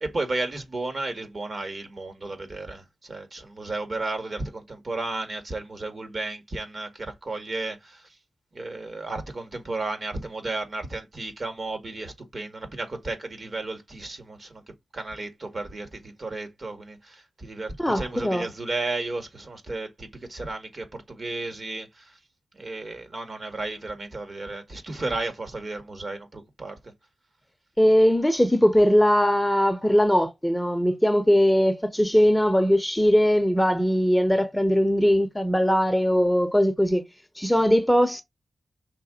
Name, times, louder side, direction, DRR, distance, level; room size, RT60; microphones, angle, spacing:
voice 1, 0.0-8.1 8.5-14.6 14.9-22.1 22.5-26.8, right 2 dB, 45° right, 2.0 m, -33 dB
voice 2, 17.8-18.5 27.8-37.0 37.4-38.2, equal, 5° left, 0.9 m, -20 dB
5.9 x 3.7 x 5.1 m
wide cardioid pair, 100°, 0 cm